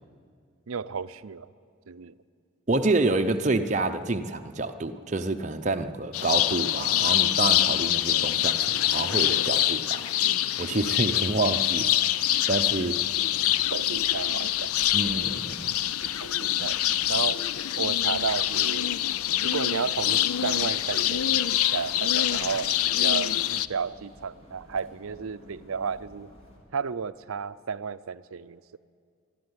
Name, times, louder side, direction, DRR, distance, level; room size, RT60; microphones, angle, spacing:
voice 1, 0.7-1.5 1.9-2.1 11.1-11.3 12.7-13.0 13.7-14.9 16.2-17.4 17.8-18.9 19.4-26.3 26.7-28.8, right 6 dB, 75° right, 14 dB, 0.6 m, -33 dB
voice 2, 2.7-10.0 10.6-11.9 12.5-13.0 14.9-15.7, right 2 dB, 35° right, 5 dB, 0.7 m, -28 dB
sound 1, 6.1-23.7, left 12 dB, 85° left, 0.5 m, -25 dB
sound 2, 12.5-26.6, equal, 30° left, 4.0 m, -52 dB
24.5 x 12.5 x 9.7 m, 2.2 s
head